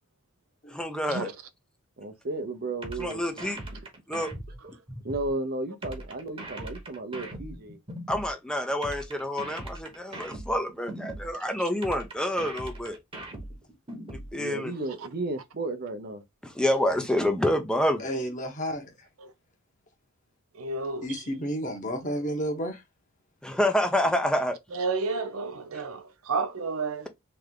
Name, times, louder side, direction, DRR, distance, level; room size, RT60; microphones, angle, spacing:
voice 1, 0.7-1.3 3.0-3.6 4.1-4.3 8.1-13.0 14.1-14.7 16.4-18.0 23.4-24.6, left 1 dB, 5° left, 0.6 m, -27 dB
voice 2, 2.0-3.2 5.0-7.8 14.3-16.2, right 2 dB, 45° right, 0.7 m, -33 dB
sound 1, 2.8-5.3 5.8-8.3 8.8-11.3 11.8-14.3, right 1 dB, 25° right, 1.2 m, -39 dB
voice 3, 18.0-18.9 21.0-22.8, equal, 35° left, 1.3 m, -31 dB
voice 4, 20.5-21.2 24.7-27.1, right 4 dB, 75° right, 0.6 m, -31 dB
3.5 x 3.3 x 3.7 m
head